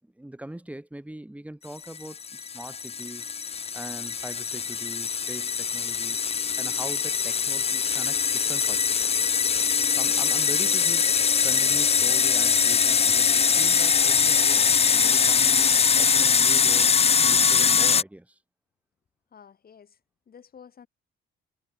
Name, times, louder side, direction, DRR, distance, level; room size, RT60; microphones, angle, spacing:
voice 1, 0.0-3.3 3.7-6.2 6.6-9.0 10.0-11.1 11.4-18.4, right 1 dB, 5° right, 5.0 m, -41 dB
sound 1, 2.0-18.0, left 6 dB, 30° left, 0.6 m, -22 dB
voice 2, 19.3-20.0 20.3-20.9, left 7 dB, 50° left, 2.9 m, -50 dB
cardioid pair, 90°, 20 cm